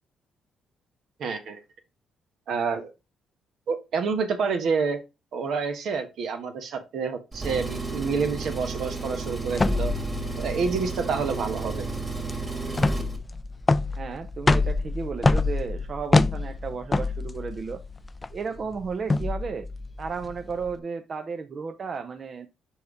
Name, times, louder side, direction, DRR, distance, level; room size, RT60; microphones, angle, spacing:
voice 1, 1.2-1.6 2.5-2.9 3.7-5.0 5.3-9.9 10.4-11.9, right 5 dB, 70° right, 7 dB, 1.3 m, -28 dB
Engine, 7.3-13.2, right 3 dB, 20° right, 2.1 m, -32 dB
sound 1, 9.5-20.7, left 3 dB, 20° left, 0.4 m, -26 dB
voice 2, 13.9-17.8 18.3-19.7 20.0-22.5, right 5 dB, 45° right, 8 dB, 0.6 m, -33 dB
5.2 x 4.7 x 4.8 m, 0.26 s
cardioid pair, 90°, 0 cm